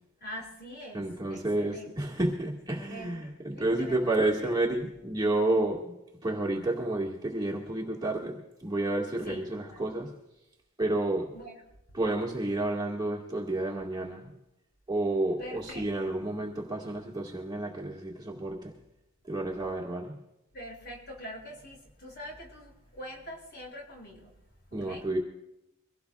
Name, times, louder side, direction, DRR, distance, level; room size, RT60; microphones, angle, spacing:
voice 1, 0.2-2.1 2.7-4.1 4.4-4.5 9.2-10.0 11.3-11.6 15.4-16.2 20.5-24.3 24.7-25.1, equal, 50° left, -2 dB, 6.4 m, -44 dB
voice 2, 0.9-5.9 6.2-10.1 10.8-11.3 11.9-14.3 14.9-18.7 19.3-20.1 24.7-25.2, right 2 dB, 20° right, -2 dB, 1.8 m, -30 dB
23.5 x 17.0 x 2.4 m, 0.89 s
head